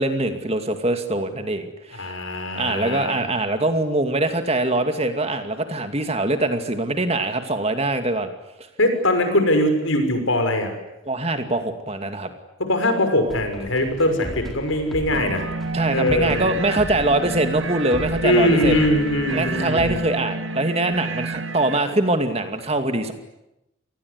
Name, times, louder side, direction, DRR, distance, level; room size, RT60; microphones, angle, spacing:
voice 1, 0.0-2.2 2.6-8.3 11.0-12.3 15.7-18.8 19.3-23.1, right 2 dB, 30° right, 7 dB, 2.5 m, -23 dB
voice 2, 1.9-3.2 8.8-10.7 12.7-15.5 15.9-16.5 18.2-20.0, left 1 dB, 75° left, 7 dB, 6.2 m, -21 dB
sound 1, 13.3-20.0, equal, ahead, 4.2 m, -36 dB
sound 2, 15.1-21.8, right 3 dB, 70° right, 1.6 m, -29 dB
28.0 x 20.5 x 9.9 m, 0.92 s
head